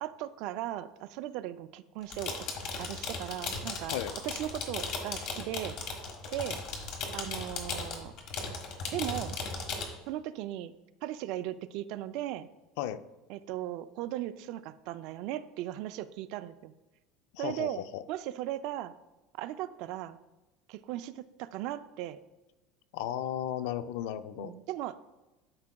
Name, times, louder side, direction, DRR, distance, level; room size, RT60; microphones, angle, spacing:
voice 1, 0.0-2.5 2.8-3.9 4.2-5.8 6.3-6.6 7.1-8.1 8.9-9.4 10.1-10.7 11.0-12.5 13.3-16.7 17.4-17.8 18.1-18.9 19.4-20.2 20.7-22.2 24.4-25.0, right 13 dB, 55° right, 13 dB, 0.3 m, -37 dB
sound 1, 2.0-9.8, left 4 dB, 55° left, 1.4 m, -37 dB
voice 2, 17.3-18.0 22.9-24.5, left 11 dB, 75° left, 12 dB, 0.4 m, -35 dB
12.0 x 4.7 x 2.3 m, 1.1 s
cardioid pair, 160°, 0 cm